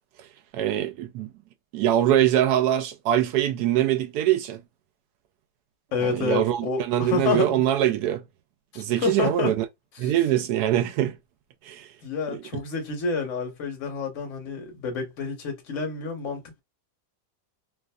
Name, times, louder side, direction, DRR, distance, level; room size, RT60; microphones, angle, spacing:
voice 1, 0.5-1.3 1.7-4.6 6.0-8.2 8.8-9.6 10.0-11.2 11.7-11.9 12.3-12.4, right 12 dB, 80° right, 1.1 m, -23 dB
voice 2, 5.9-7.6 8.7-9.5 10.0-10.1 12.0-16.6, left 4 dB, 55° left, 1.3 m, -29 dB
3.0 x 2.5 x 2.2 m
omnidirectional pair, 1.7 m